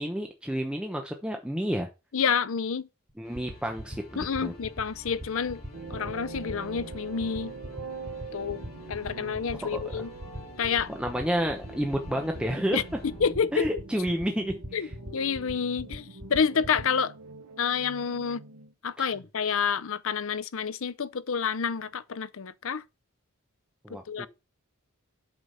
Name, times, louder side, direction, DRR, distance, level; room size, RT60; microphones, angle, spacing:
voice 1, 0.0-1.9 3.2-4.5 9.6-10.0 10.9-12.8 13.5-14.9 19.0-19.1 23.8-24.3, equal, 5° right, 0.9 m, -30 dB
voice 2, 2.1-2.9 4.2-5.6 5.9-7.5 8.3-8.6 8.9-10.1 10.6-10.9 12.7-12.8 13.2-13.7 14.7-14.9 15.1-17.1 17.6-18.4 18.8-22.8 23.9-24.3, left 6 dB, 65° left, 0.6 m, -28 dB
sound 1, 3.1-16.8, equal, 30° right, 1.7 m, -39 dB
sound 2, 3.2-15.2, left 2 dB, 45° left, 4.3 m, -50 dB
sound 3, 5.7-18.7, right 3 dB, 80° right, 1.1 m, -44 dB
8.1 x 6.0 x 5.6 m
head